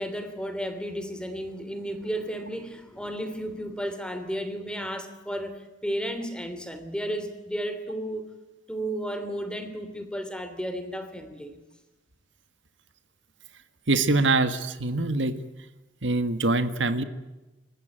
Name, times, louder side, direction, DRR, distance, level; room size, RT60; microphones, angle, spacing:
voice 1, 0.0-8.3 8.7-11.6, equal, 5° left, 9 dB, 3.0 m, -33 dB
voice 2, 13.9-15.4 16.0-17.0, right 2 dB, 70° right, 11 dB, 1.6 m, -24 dB
27.5 x 15.0 x 9.1 m, 1.1 s
head